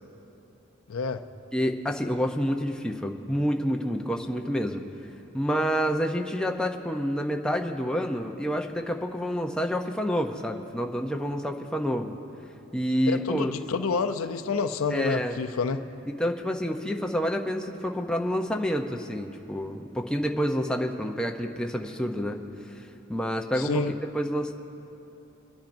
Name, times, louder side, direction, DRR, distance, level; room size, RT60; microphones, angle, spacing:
voice 1, 0.9-1.2 13.1-15.8 23.6-23.9, left 4 dB, 90° left, 8 dB, 0.5 m, -28 dB
voice 2, 1.5-4.8 5.3-12.2 12.7-13.5 14.9-15.4 16.2-22.4 22.7-23.8 24.1-24.5, equal, 5° left, 2 dB, 0.6 m, -28 dB
27.0 x 10.5 x 2.6 m, 3.0 s
head